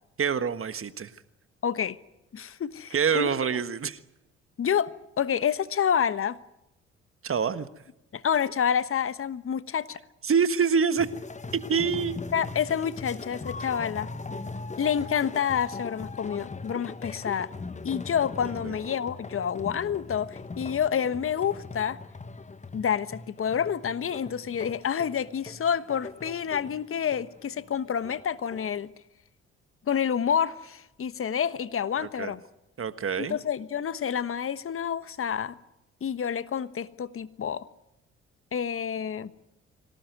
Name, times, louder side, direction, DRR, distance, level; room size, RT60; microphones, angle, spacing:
voice 1, 0.2-1.1 2.9-4.0 7.2-7.7 10.2-11.1 11.7-12.2 18.6-18.7 32.0-32.3 32.8-33.4, right 6 dB, 40° right, 12 dB, 1.5 m, -26 dB
voice 2, 1.6-2.0 2.3-3.4 4.6-4.9 5.2-6.4 8.1-10.0 12.3-14.1 14.8-17.5 17.8-22.0 22.7-28.9 29.9-32.4 33.2-35.6 36.0-37.6 38.5-39.3, left 8 dB, 40° left, 14 dB, 1.2 m, -28 dB
sound 1, 11.0-28.8, left 3 dB, 20° left, 1.2 m, -40 dB
25.0 x 18.0 x 9.5 m, 0.92 s
hypercardioid pair, 45°, 32 cm